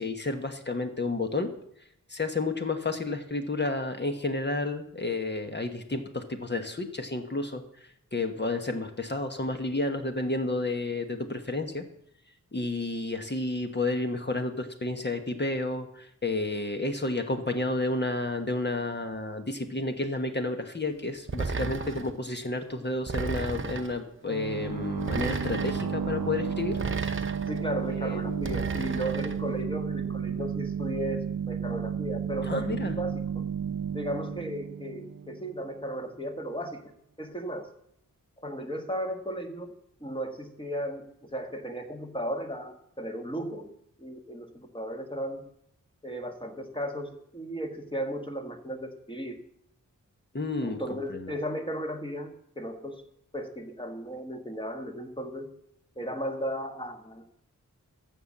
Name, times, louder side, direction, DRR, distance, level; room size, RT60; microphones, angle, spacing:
voice 1, 0.0-1.5 2.1-7.6 8.1-11.8 12.5-26.8 28.3-28.5 32.4-32.9 50.3-50.8 51.1-51.3, left 2 dB, 30° left, 6 dB, 1.3 m, -31 dB
sound 1, 21.3-22.2 23.1-24.0 25.0-25.9 26.7-27.6 28.4-29.4, right 4 dB, 40° right, 0.9 m, -33 dB
sound 2, 24.3-35.8, right 7 dB, 90° right, 0.7 m, -33 dB
voice 2, 27.5-33.2 33.9-36.9 37.2-37.7 38.4-39.7 40.0-45.5 46.0-49.4 50.6-53.0 53.3-55.5 55.9-57.3, equal, 15° left, 4 dB, 1.6 m, -35 dB
14.0 x 5.6 x 7.3 m, 0.74 s
wide cardioid pair, 85°, 33 cm